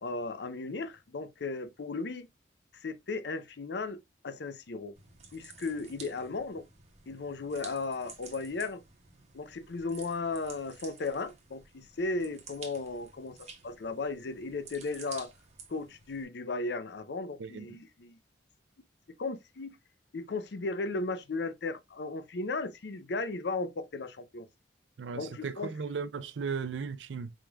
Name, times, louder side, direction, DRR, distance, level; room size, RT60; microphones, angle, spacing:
voice 1, 0.0-2.3 2.7-4.9 5.3-6.6 7.1-8.8 9.3-15.3 15.7-18.2 19.2-19.8 20.1-24.5 25.1-25.7, left 3 dB, 65° left, 0.5 m, -35 dB
sound 1, 5.0-16.2, right 5 dB, 35° right, 0.9 m, -52 dB
voice 2, 17.4-17.8 25.0-27.3, right 5 dB, 80° right, 0.5 m, -36 dB
4.6 x 3.6 x 2.3 m
head